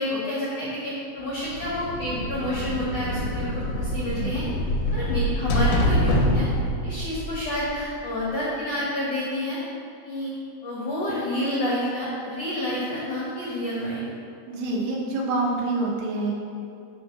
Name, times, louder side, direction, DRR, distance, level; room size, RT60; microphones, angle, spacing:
voice 1, 0.0-4.4 4.9-6.5 6.8-9.6 10.0-10.3 10.6-14.0, left 1 dB, 60° left, -7 dB, 1.7 m, -29 dB
sound 1, 1.4-8.1, equal, 85° left, 3.0 m, -26 dB
voice 2, 14.5-16.3, right 2 dB, 85° right, -2 dB, 3.2 m, -27 dB
9.5 x 3.8 x 5.8 m, 2.5 s
omnidirectional pair, 4.6 m